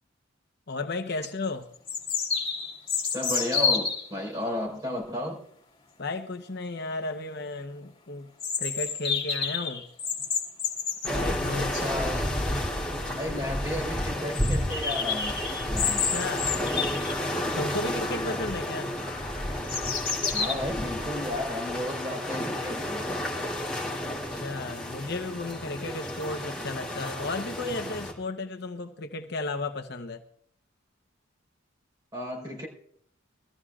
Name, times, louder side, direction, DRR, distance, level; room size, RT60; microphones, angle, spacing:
voice 1, 0.7-1.7 6.0-8.3 8.6-9.8 11.0-11.7 13.0-13.3 15.8-16.6 17.5-18.9 24.0-30.2, left 2 dB, 55° left, 6 dB, 0.9 m, -34 dB
sound 1, 0.9-1.0 1.9-4.1 8.4-11.1 12.8-12.9 13.1-13.2 13.6-13.7 14.3-17.6 18.0-18.5 19.0-20.5, left 6 dB, 30° left, 2.4 m, -30 dB
voice 2, 3.1-5.4 11.6-12.3 13.1-15.4 15.7-16.2 20.3-23.1 32.1-32.7, left 1 dB, 20° right, -2 dB, 4.5 m, -33 dB
sound 2, 11.0-28.1, left 1 dB, 5° left, 2.9 m, -31 dB
22.5 x 14.0 x 2.4 m, 0.64 s
head